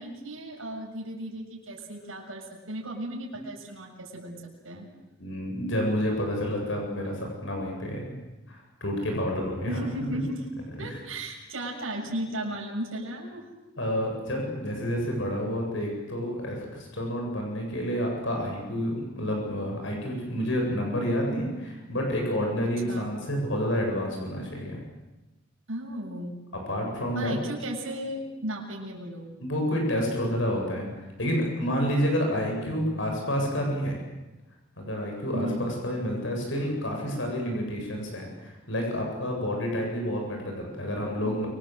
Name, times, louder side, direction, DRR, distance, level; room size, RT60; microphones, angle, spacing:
voice 1, 0.0-4.9 9.7-10.5 10.8-13.5 22.9-23.1 25.7-26.4 27.1-29.3 35.3-35.8 41.2-41.5, right 1 dB, 80° right, -1 dB, 7.0 m, -35 dB
voice 2, 5.2-8.1 8.5-10.1 10.8-11.0 13.8-24.8 26.5-27.4 29.4-30.9 31.2-34.0 34.8-41.5, equal, 65° left, 1 dB, 7.8 m, -29 dB
29.0 x 25.5 x 7.8 m, 1.1 s
head